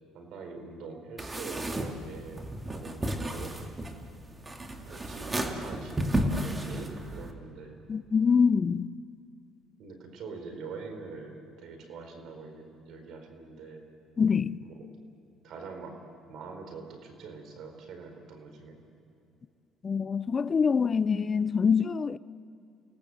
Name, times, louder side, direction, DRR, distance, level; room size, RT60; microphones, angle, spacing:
voice 1, 0.1-3.6 4.8-7.8 9.8-13.9 14.6-14.9 15.4-16.0 16.3-18.8, right 4 dB, 65° right, 4.4 m, -44 dB
sound 1, 1.2-7.3, right 1 dB, 20° right, 2.4 m, -33 dB
voice 2, 7.9-8.9 14.2-14.7 19.8-22.2, left 6 dB, 35° left, 0.5 m, -25 dB
29.5 x 18.0 x 7.8 m
supercardioid pair, 80°, 0 cm